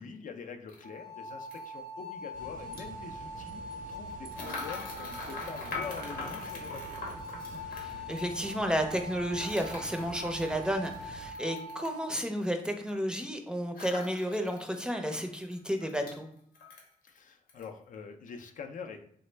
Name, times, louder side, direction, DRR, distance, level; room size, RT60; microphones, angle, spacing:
voice 1, 0.0-7.0 17.0-19.0, left 5 dB, 65° left, 6 dB, 0.4 m, -45 dB
sound 1, 0.7-0.8 1.5-1.6 2.6-2.8 4.3-8.3 9.4-12.0 13.7-14.8 15.1-15.2 15.5-16.2 16.5-17.2 17.5-17.7, left 3 dB, 85° left, 0.8 m, -42 dB
sound 2, 0.8-12.1, equal, 30° left, 0.7 m, -43 dB
sound 3, 2.3-11.3, right 1 dB, 70° right, 0.6 m, -49 dB
voice 2, 7.6-16.3, equal, 5° right, 5 dB, 0.5 m, -32 dB
3.2 x 2.0 x 3.2 m, 0.67 s
cardioid pair, 70°, 15 cm